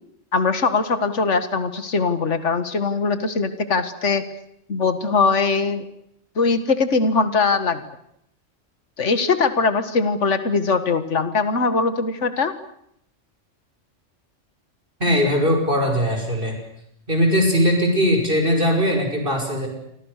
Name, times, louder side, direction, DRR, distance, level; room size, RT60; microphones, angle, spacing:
voice 1, 0.3-4.2 4.7-5.9 6.4-7.8 9.0-12.5, left 4 dB, 70° left, 10 dB, 2.2 m, -21 dB
voice 2, 15.0-16.6 17.1-19.7, equal, 45° right, 3 dB, 6.1 m, -20 dB
29.0 x 24.5 x 6.7 m, 0.74 s
omnidirectional pair, 1.3 m